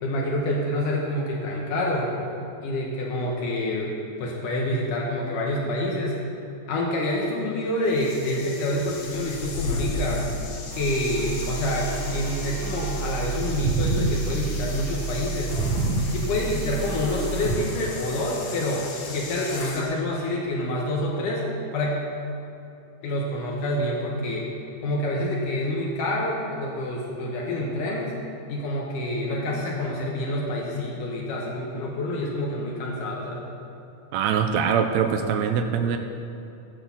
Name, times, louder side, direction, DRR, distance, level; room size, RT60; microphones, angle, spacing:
voice 1, 0.0-2.1 2.6-3.9 4.2-6.2 6.7-10.3 10.8-15.5 16.1-21.5 21.7-22.0 23.0-24.5 24.8-28.1 28.5-33.5, left 1 dB, 85° left, -2 dB, 2.9 m, -27 dB
sound 1, 7.8-19.9, left 3 dB, 65° left, 2.5 m, -36 dB
sound 2, 10.7-17.6, right 3 dB, 50° right, 2.1 m, -29 dB
voice 2, 34.1-36.0, right 7 dB, 75° right, 5 dB, 1.7 m, -23 dB
14.5 x 6.1 x 7.1 m, 2.8 s
omnidirectional pair, 3.6 m